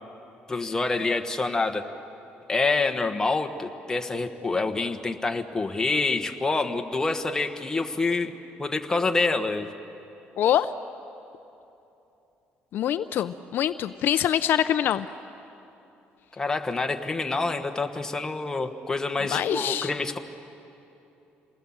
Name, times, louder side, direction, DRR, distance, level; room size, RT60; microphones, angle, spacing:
voice 1, 0.5-1.9 2.5-8.3 8.6-9.7 16.3-20.2, left 3 dB, 15° left, 5 dB, 1.3 m, -27 dB
voice 2, 10.4-10.7 12.7-15.1 19.3-19.9, left 10 dB, 60° left, 11 dB, 0.5 m, -24 dB
28.5 x 19.5 x 7.3 m, 2.9 s
cardioid pair, 130°, 4 cm